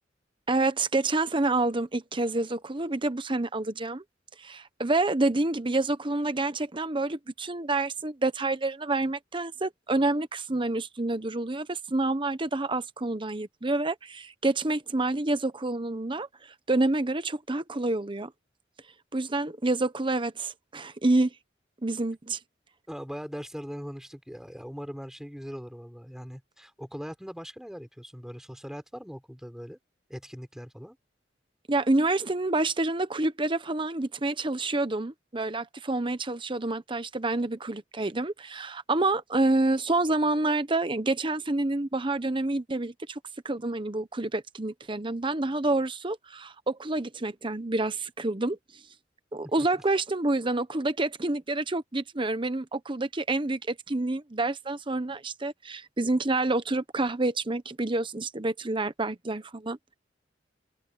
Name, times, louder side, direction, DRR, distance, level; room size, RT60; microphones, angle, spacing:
voice 1, 0.5-4.0 4.4-16.3 16.7-18.3 19.1-21.3 21.8-22.4 31.7-43.2 43.4-48.6 49.3-59.9, right 2 dB, 25° right, 1.0 m, -28 dB
voice 2, 22.9-29.8 30.1-31.0 49.6-49.8, equal, 5° right, 4.7 m, -40 dB
open air
head